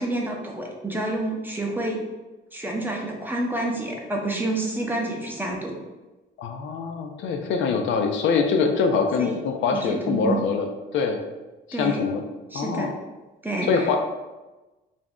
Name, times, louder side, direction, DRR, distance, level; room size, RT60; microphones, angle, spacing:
voice 1, 0.0-2.0 2.5-5.8 9.2-9.4 9.8-10.4 11.7-12.1 12.5-12.9 13.4-14.0, right 2 dB, 10° right, -1 dB, 0.5 m, -28 dB
voice 2, 6.4-10.7 10.9-11.2 11.7-12.2 12.5-12.9 13.7-14.0, left 5 dB, 70° left, 4 dB, 0.4 m, -24 dB
2.5 x 2.0 x 3.4 m, 1.1 s
cardioid pair, 90°, 20 cm